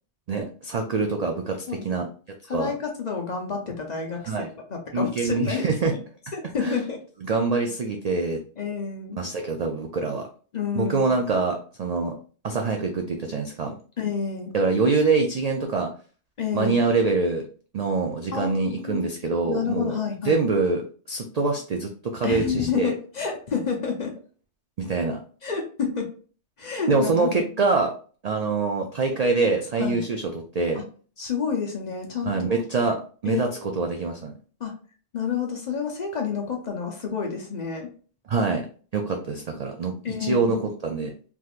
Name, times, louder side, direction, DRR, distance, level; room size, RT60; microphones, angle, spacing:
voice 1, 0.3-2.1 2.5-2.7 4.3-4.5 4.9-5.9 6.6-6.8 7.2-8.4 9.2-10.3 10.7-12.1 12.4-13.7 14.5-15.9 16.5-17.4 17.7-20.0 20.2-22.9 24.8-25.2 26.9-27.9 28.2-30.2 30.5-30.8 32.3-34.3 38.3-38.7 38.9-39.9 40.2-41.1, right 4 dB, 65° right, 3 dB, 0.4 m, -25 dB
voice 2, 1.7-2.1 2.5-5.9 6.3-7.0 8.6-9.2 10.5-11.1 14.0-14.5 16.4-16.9 18.3-19.0 19.4-20.4 22.2-24.1 25.4-26.1 26.6-27.5 29.8-30.0 30.7-30.8 31.2-32.6 33.2-33.8 34.6-34.7 35.1-37.9 40.0-40.7, left 6 dB, 45° left, 2 dB, 0.7 m, -29 dB
3.4 x 2.9 x 2.4 m, 0.41 s
omnidirectional pair, 1.2 m